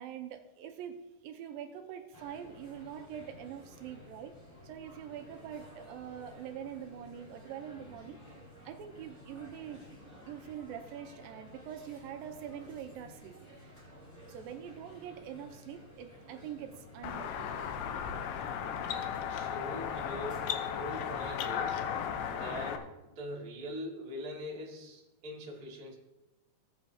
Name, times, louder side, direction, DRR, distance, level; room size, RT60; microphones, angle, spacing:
voice 1, 0.0-4.3 4.6-8.2 8.7-9.8 10.3-13.8 14.3-17.6, right 9 dB, 80° right, 6 dB, 2.4 m, -44 dB
sound 1, 2.1-21.3, equal, 10° left, 4.2 m, -53 dB
sound 2, 17.0-22.8, left 8 dB, 90° left, 2.8 m, -35 dB
voice 2, 19.3-21.9 22.3-25.9, equal, 30° right, -3 dB, 1.9 m, -42 dB
19.0 x 8.0 x 2.8 m, 1.0 s
omnidirectional pair, 4.4 m